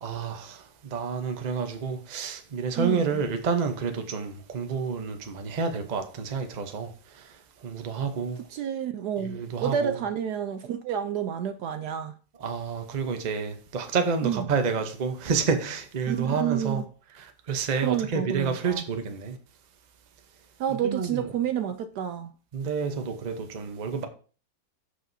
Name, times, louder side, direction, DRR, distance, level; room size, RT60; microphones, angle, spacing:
voice 1, 0.0-8.5 9.2-10.0 12.4-16.8 17.1-19.4 20.7-21.3 22.5-24.1, right 5 dB, 35° right, 0.7 m, -29 dB
voice 2, 2.8-3.2 8.5-12.2 14.2-14.4 16.1-16.8 17.8-18.8 20.6-22.3, right 9 dB, 70° right, 1.0 m, -29 dB
13.5 x 4.9 x 2.7 m
omnidirectional pair, 1.9 m